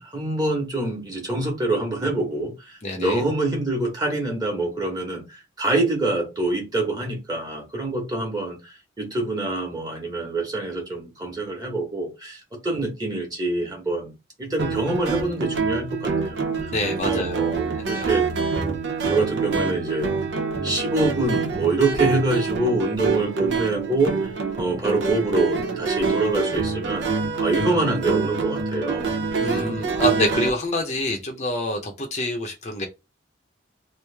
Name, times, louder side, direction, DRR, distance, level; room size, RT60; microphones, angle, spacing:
voice 1, 0.0-16.7 17.0-18.3 19.0-20.1 20.6-24.3 24.6-29.1 29.5-29.8, right 2 dB, 20° right, 1.2 m, -26 dB
voice 2, 2.8-3.2 16.7-17.3 17.8-18.1 29.4-32.9, left 1 dB, 35° left, 0.6 m, -26 dB
sound 1, 14.6-30.5, right 4 dB, 65° right, 0.7 m, -26 dB
3.1 x 2.5 x 3.3 m
head